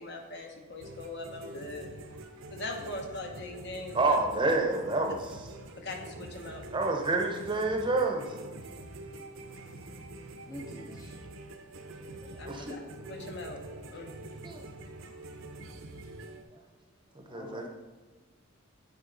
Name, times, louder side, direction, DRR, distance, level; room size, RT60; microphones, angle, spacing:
voice 1, 0.0-1.9 2.5-4.2 5.8-6.6 12.4-12.8 13.1-14.2, left 2 dB, 55° left, 2 dB, 1.1 m, -41 dB
sound 1, 0.8-16.4, right 2 dB, 70° right, 0.7 m, -45 dB
voice 2, 3.9-5.5 6.7-8.4 12.4-12.8 14.4-14.6 17.3-17.7, right 2 dB, 25° right, 2 dB, 0.7 m, -28 dB
voice 3, 10.1-11.2 17.0-17.7, equal, 15° left, -1 dB, 0.6 m, -47 dB
9.6 x 4.5 x 3.8 m, 1.3 s
head